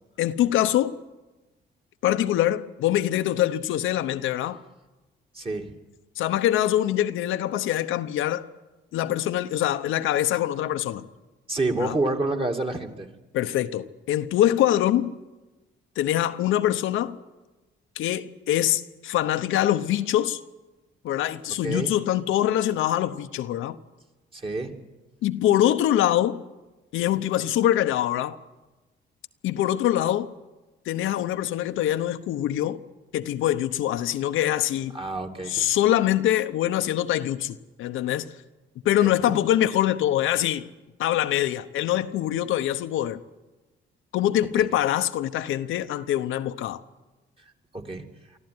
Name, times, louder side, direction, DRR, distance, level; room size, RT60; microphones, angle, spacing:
voice 1, 0.2-1.0 2.0-4.6 6.2-8.5 8.9-11.0 11.8-11.9 13.3-15.1 16.0-17.2 18.0-20.4 21.0-23.8 25.2-26.4 26.9-28.4 29.4-30.3 30.9-32.8 33.1-35.0 35.5-38.3 38.8-40.7 41.0-43.2 44.1-46.8, left 12 dB, 85° left, 0.9 m, -24 dB
voice 2, 5.3-5.7 11.5-13.1 21.6-21.9 24.3-24.8 34.9-35.7 39.0-39.1 44.6-44.7 47.7-48.1, right 2 dB, 25° right, 2.5 m, -28 dB
24.0 x 14.0 x 9.6 m
cardioid pair, 90°, 20 cm